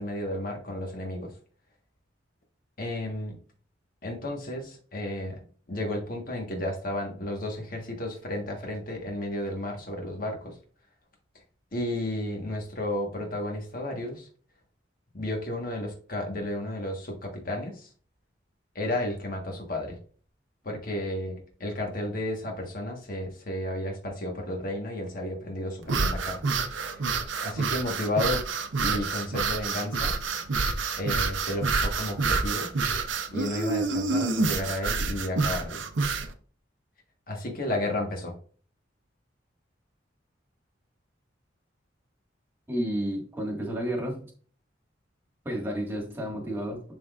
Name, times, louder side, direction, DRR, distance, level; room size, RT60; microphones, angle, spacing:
voice 1, 0.0-1.3 2.8-3.4 4.0-5.4 5.7-10.6 11.7-14.3 15.1-17.9 18.7-20.0 20.6-26.4 26.8-28.4 28.8-30.1 30.9-32.7 33.3-35.8 37.3-38.3, left 1 dB, 50° left, 1 dB, 1.4 m, -32 dB
sound 1, 25.8-36.3, right 4 dB, 90° right, 0.8 m, -28 dB
voice 2, 42.7-44.2 45.5-46.8, equal, 10° right, 0 dB, 1.7 m, -31 dB
11.0 x 3.7 x 2.4 m, 0.43 s
head